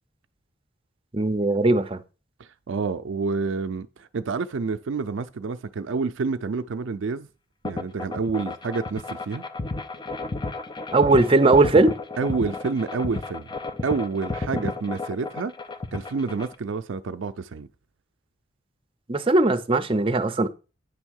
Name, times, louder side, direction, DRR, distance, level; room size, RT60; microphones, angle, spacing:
voice 1, 1.1-2.0 10.9-11.9 19.1-20.5, right 2 dB, 25° right, 0.6 m, -19 dB
voice 2, 2.4-7.3 7.6-9.4 12.2-13.5 13.8-15.5 15.9-17.7, right 4 dB, 70° right, 0.4 m, -28 dB
sound 1, 7.6-16.6, left 3 dB, 25° left, 0.6 m, -32 dB
9.4 x 3.5 x 6.3 m
head